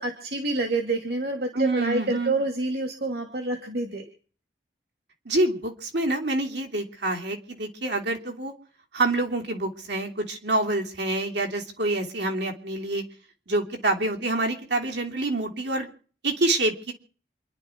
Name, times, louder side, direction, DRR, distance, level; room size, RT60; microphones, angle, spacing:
voice 1, 0.0-4.0, right 2 dB, 60° right, 4 dB, 2.7 m, -28 dB
voice 2, 1.5-2.4 5.2-8.5 8.9-13.0 13.5-15.9 16.2-16.9, right 2 dB, 80° right, 3 dB, 3.2 m, -27 dB
28.0 x 11.0 x 4.6 m, 0.42 s
head